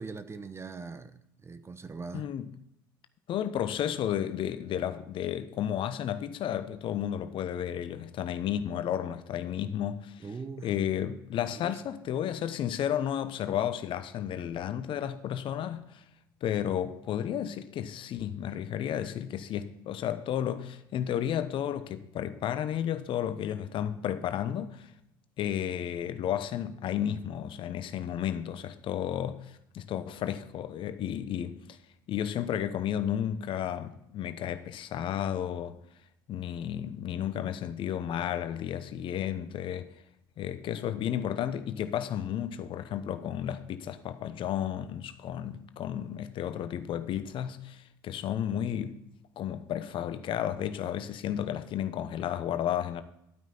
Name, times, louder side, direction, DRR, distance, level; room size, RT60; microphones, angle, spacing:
voice 1, 0.0-2.3 10.2-10.9 11.5-11.8, right 4 dB, 25° right, 0.8 m, -41 dB
voice 2, 2.1-2.5 3.3-10.2 10.6-16.0 16.4-24.9 25.4-31.6 32.1-35.7 36.3-39.9 40.4-49.0 49.4-53.0, left 10 dB, 50° left, 0.9 m, -32 dB
12.5 x 9.2 x 4.2 m
hypercardioid pair, 65°, 11 cm